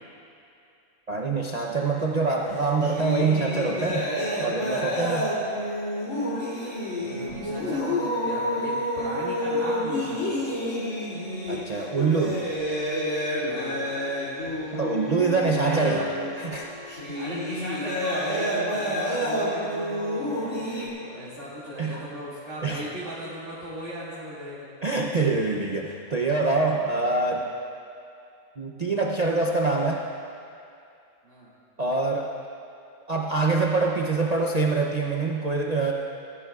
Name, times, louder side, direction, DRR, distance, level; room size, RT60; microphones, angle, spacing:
voice 1, 1.1-4.1 4.4-5.3 11.5-12.4 14.7-16.0 16.4-16.7 21.8-22.0 22.6-22.9 24.8-27.5 28.6-30.0 31.8-32.3 33.1-35.9, right 3 dB, 40° right, -2 dB, 0.6 m, -25 dB
sound 1, 1.8-2.1 2.3-20.9, equal, 55° left, 3.2 m, -29 dB
voice 2, 7.0-10.6 13.4-13.9 15.6-16.1 17.1-24.7 31.2-31.5, equal, 55° right, -12 dB, 2.7 m, -37 dB
20.5 x 14.5 x 2.4 m, 2.5 s
omnidirectional pair, 1.5 m